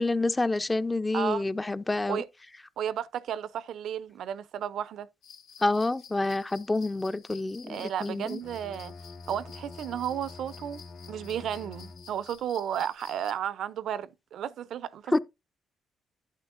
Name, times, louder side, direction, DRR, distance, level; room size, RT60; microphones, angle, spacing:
voice 1, 0.0-2.2 5.6-8.4 15.1-15.2, left 2 dB, 20° left, 0.6 m, -28 dB
voice 2, 2.8-5.1 7.7-8.9 9.3-10.8 11.1-15.2, right 9 dB, 70° right, 0.6 m, -33 dB
sound 1, 5.2-13.3, left 7 dB, 80° left, 2.5 m, -52 dB
Bowed string instrument, 8.3-12.4, left 3 dB, 60° left, 2.0 m, -46 dB
11.0 x 8.8 x 2.6 m
cardioid pair, 90°, 0 cm